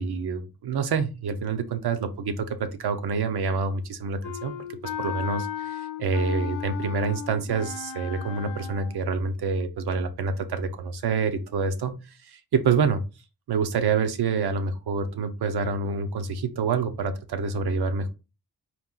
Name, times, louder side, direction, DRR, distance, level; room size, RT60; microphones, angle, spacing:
voice 1, 0.0-4.5 5.0-12.0 12.2-13.0 13.5-18.1, right 5 dB, 75° right, 8 dB, 0.8 m, -27 dB
Wind instrument woodwind instrument, 4.2-9.1, left 9 dB, 50° left, 0.9 m, -35 dB
4.3 x 2.4 x 3.8 m, 0.29 s
cardioid pair, 80°, 39 cm